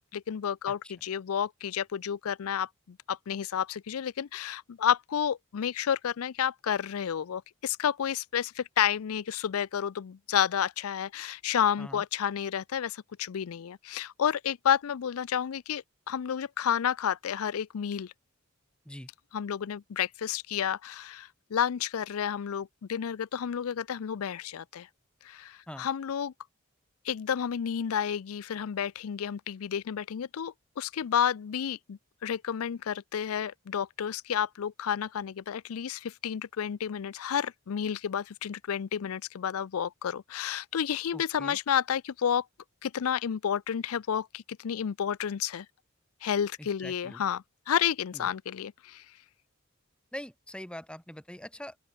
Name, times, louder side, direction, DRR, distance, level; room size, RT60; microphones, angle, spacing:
voice 1, 0.1-2.7 3.1-18.1 19.3-24.9 25.2-26.3 27.0-42.4 42.8-45.7 46.2-49.0, left 8 dB, 90° left, 0.4 m, -31 dB
voice 2, 41.1-41.6 46.6-47.2 48.1-48.3 50.1-51.8, left 1 dB, 5° left, 1.7 m, -43 dB
open air
head